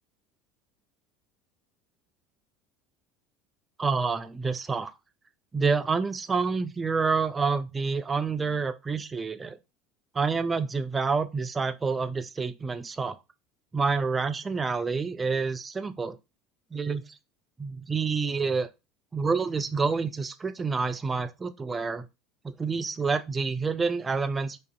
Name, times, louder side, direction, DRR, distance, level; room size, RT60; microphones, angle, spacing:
voice 1, 3.8-4.9 5.5-9.6 10.1-13.2 13.7-16.2 16.7-17.0 17.6-18.7 19.1-22.1 22.4-24.6, right 4 dB, 20° right, 0.3 m, -28 dB
2.4 x 2.4 x 2.3 m
figure-of-eight pair, 65°, 0 cm